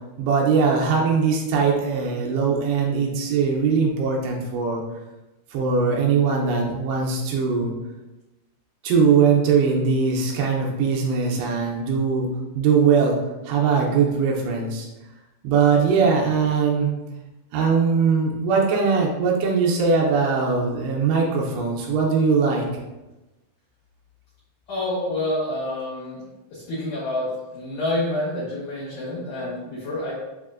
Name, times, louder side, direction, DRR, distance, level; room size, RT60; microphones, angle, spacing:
voice 1, 0.2-4.8 5.5-7.7 8.8-12.3 12.6-13.2 13.4-14.9 15.4-16.9 17.5-22.6, right 5 dB, 80° right, -1 dB, 2.6 m, -21 dB
voice 2, 24.7-30.1, left 1 dB, 80° left, -7 dB, 1.8 m, -28 dB
7.1 x 2.6 x 2.4 m, 1.0 s
omnidirectional pair, 4.9 m